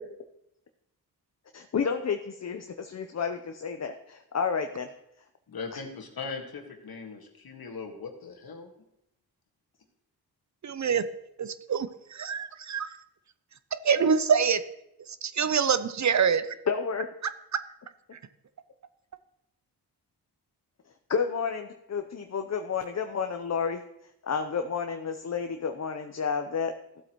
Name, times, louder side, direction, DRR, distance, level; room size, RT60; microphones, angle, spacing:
voice 1, 1.5-4.9 16.7-17.1 21.1-23.8 24.2-26.7, left 6 dB, 40° left, 6 dB, 0.7 m, -30 dB
voice 2, 5.5-8.7, left 4 dB, 60° left, 3 dB, 1.8 m, -39 dB
voice 3, 10.6-11.0 11.4-12.9 13.7-14.6 15.2-16.5, right 6 dB, 45° right, 13 dB, 0.6 m, -25 dB
14.0 x 7.8 x 3.0 m, 0.82 s
cardioid pair, 60°, 40 cm